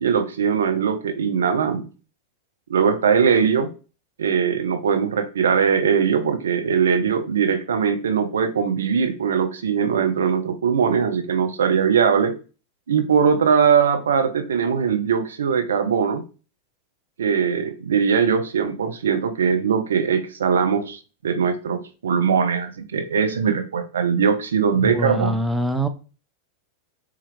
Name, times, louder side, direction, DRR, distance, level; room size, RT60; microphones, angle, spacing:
voice 1, 0.0-1.9 2.7-3.7 4.2-12.4 12.9-16.2 17.2-25.4, right 6 dB, 75° right, 0.5 m, -21 dB
voice 2, 24.7-25.9, right 1 dB, 5° right, 0.5 m, -24 dB
4.2 x 2.3 x 3.1 m
figure-of-eight pair, 90°, 0 cm